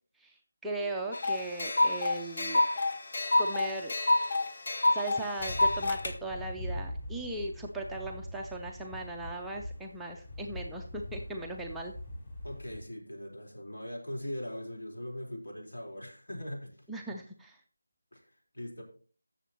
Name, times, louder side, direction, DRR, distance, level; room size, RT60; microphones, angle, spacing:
voice 1, 0.6-2.6 3.4-3.9 4.9-11.9 16.9-17.6, right 2 dB, ahead, -2 dB, 0.4 m, -38 dB
sound 1, 1.1-6.1, left 2 dB, 40° left, 0.8 m, -28 dB
sound 2, 5.4-12.8, left 1 dB, 20° left, 3.6 m, -42 dB
voice 2, 12.4-16.7 18.1-18.8, left 1 dB, 75° left, 0 dB, 4.0 m, -40 dB
14.0 x 7.0 x 2.9 m, 0.42 s
figure-of-eight pair, 175°, 0 cm